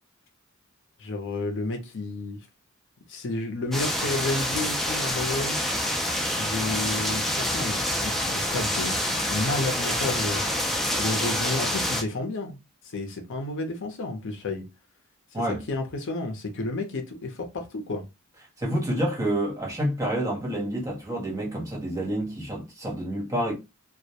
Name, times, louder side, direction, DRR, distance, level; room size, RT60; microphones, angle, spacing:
voice 1, 1.0-2.4 3.1-5.6 6.3-10.4 11.0-14.6 15.7-18.0, left 2 dB, 60° left, 0.5 m, -31 dB
sound 1, 3.7-12.0, equal, ahead, 0.3 m, -27 dB
voice 2, 18.6-23.5, right 1 dB, 15° right, 0.8 m, -28 dB
2.2 x 2.1 x 2.7 m
head